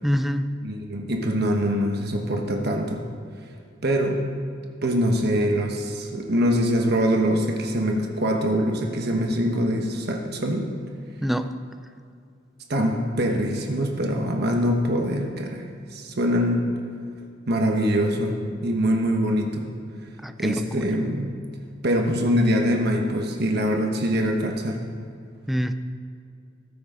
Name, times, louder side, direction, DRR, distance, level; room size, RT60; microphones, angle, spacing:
voice 1, 0.0-0.5 11.2-11.6 20.2-20.6 25.5-25.7, equal, ahead, 9 dB, 0.4 m, -25 dB
voice 2, 0.6-3.0 3.8-4.2 4.8-10.7 12.7-16.7 17.5-18.4 18.6-19.7 20.4-21.4 21.8-24.8, equal, 55° right, 1 dB, 1.2 m, -23 dB
15.0 x 12.5 x 3.8 m, 2.3 s
head